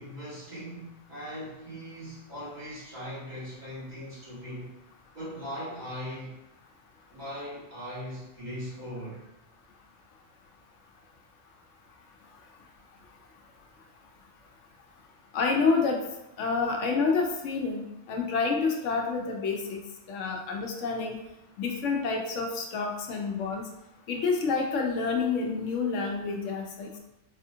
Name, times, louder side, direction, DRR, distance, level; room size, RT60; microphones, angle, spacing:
voice 1, 0.0-4.8 5.1-6.4 7.1-9.2, equal, 35° right, -10 dB, 1.6 m, -39 dB
voice 2, 15.3-16.0 16.4-19.8 20.1-21.2 21.6-23.7 24.1-27.0, left 4 dB, 80° left, 1 dB, 0.9 m, -28 dB
4.1 x 2.4 x 2.7 m, 0.91 s
omnidirectional pair, 1.3 m